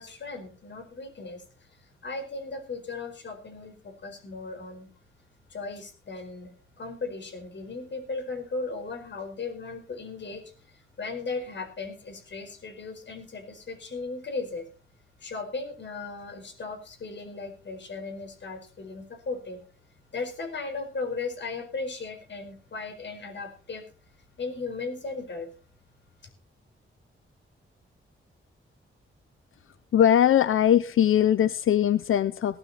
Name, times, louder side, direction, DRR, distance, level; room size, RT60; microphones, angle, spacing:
voice 1, 0.0-1.4 2.0-4.9 5.5-6.5 6.8-10.4 11.0-14.7 15.2-19.6 20.1-23.8 24.4-25.5, left 3 dB, 60° left, 5 dB, 4.8 m, -36 dB
voice 2, 29.9-32.6, left 10 dB, 75° left, 16 dB, 0.6 m, -21 dB
17.5 x 12.5 x 4.3 m, 0.36 s
wide cardioid pair, 165°, 21 cm